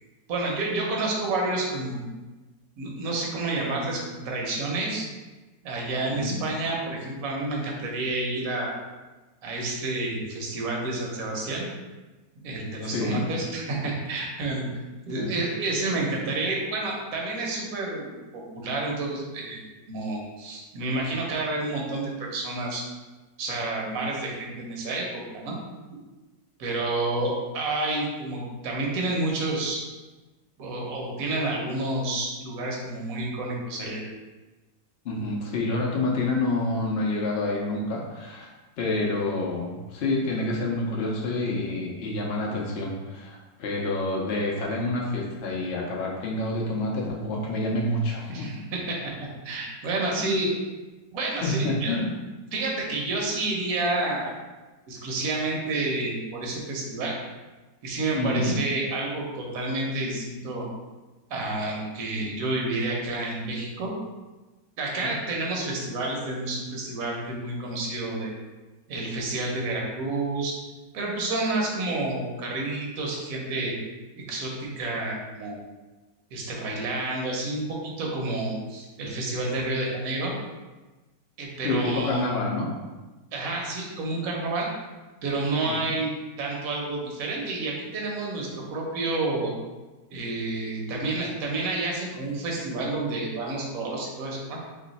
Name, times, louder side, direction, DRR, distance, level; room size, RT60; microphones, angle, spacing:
voice 1, 0.3-2.1 2.8-5.1 5.6-8.8 9.4-11.7 12.4-14.6 15.0-18.1 18.5-22.8 23.4-25.1 25.3-25.6 26.6-29.8 30.6-34.0 48.3-50.5 51.1-52.0 52.5-54.3 54.9-57.2 57.8-60.7 61.3-63.9 64.8-68.3 68.9-70.6 70.9-73.8 74.2-75.6 76.3-80.3 81.4-82.3 83.3-84.7 85.2-86.1 86.4-89.5 90.1-94.6, right 2 dB, 60° right, -1 dB, 1.2 m, -29 dB
voice 2, 6.1-6.4 12.8-13.2 15.2-15.3 35.0-38.5 38.8-48.5 50.2-50.3 51.4-52.1 58.1-58.6 65.0-65.1 81.6-82.7 85.6-85.7, left 2 dB, 75° left, -2 dB, 0.5 m, -28 dB
3.1 x 3.0 x 4.0 m, 1.2 s
omnidirectional pair, 1.9 m